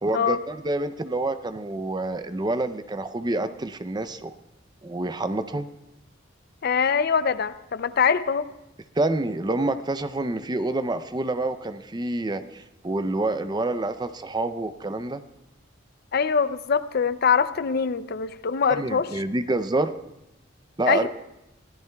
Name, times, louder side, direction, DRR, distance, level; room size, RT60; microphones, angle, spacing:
voice 1, 0.0-4.4 4.8-5.7 9.0-15.2 18.7-19.9 20.8-21.1, right 2 dB, 20° right, 11 dB, 0.5 m, -27 dB
voice 2, 6.6-8.5 16.1-19.1 20.9-21.1, left 6 dB, 55° left, 13 dB, 0.5 m, -23 dB
23.5 x 16.0 x 2.3 m, 0.90 s
head